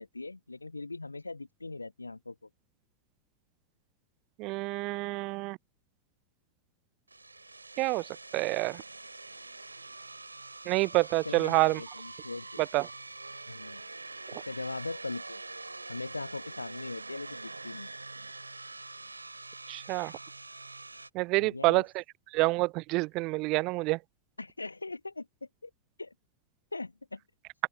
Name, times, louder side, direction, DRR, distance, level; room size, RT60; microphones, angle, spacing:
voice 1, 0.0-2.5 11.2-12.6 13.5-13.8 14.4-15.4 15.9-17.9 21.4-21.9 24.4-25.7 26.0-26.1 26.7-27.2, left 3 dB, 80° left, 1.5 m, -40 dB
voice 2, 4.4-5.6 7.8-8.1 8.3-8.8 10.7-11.8 12.7-12.9 19.7-20.1 21.1-22.0 22.3-24.0, right 23 dB, 40° right, 0.5 m, -27 dB
sound 1, 7.1-21.1, right 3 dB, 80° right, 5.2 m, -45 dB
open air
figure-of-eight pair, 90°, 0 cm